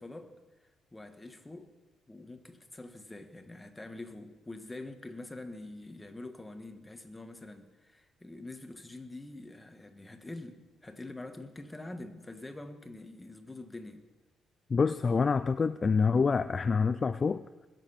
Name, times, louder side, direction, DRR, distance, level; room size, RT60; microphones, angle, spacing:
voice 1, 0.0-1.7 2.1-14.0, left 2 dB, 15° left, 1.5 m, -45 dB
voice 2, 14.7-17.4, left 5 dB, 35° left, 0.4 m, -26 dB
21.5 x 7.5 x 5.7 m
cardioid pair, 90°, 0 cm